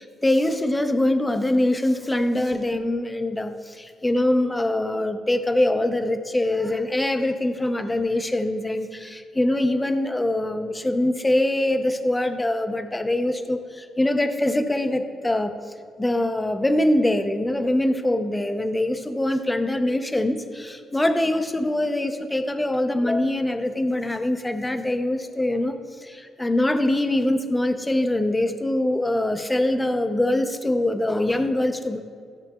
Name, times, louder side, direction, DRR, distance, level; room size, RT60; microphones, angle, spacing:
voice 1, 0.0-15.5 16.0-25.7 26.0-32.0, left 1 dB, 15° left, 7 dB, 0.6 m, -23 dB
13.5 x 6.9 x 2.3 m, 2.2 s
cardioid pair, 90°, 0 cm